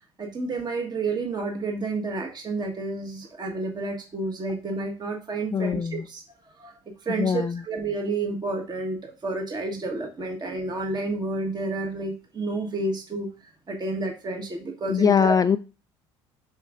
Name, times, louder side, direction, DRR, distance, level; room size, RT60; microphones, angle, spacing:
voice 1, 0.0-6.2 6.6-15.4, right 3 dB, 30° right, 2 dB, 1.4 m, -30 dB
voice 2, 5.5-6.0 7.2-7.6 14.9-15.6, left 6 dB, 25° left, 11 dB, 0.4 m, -22 dB
8.9 x 6.0 x 2.6 m, 0.32 s
hypercardioid pair, 65°, 15 cm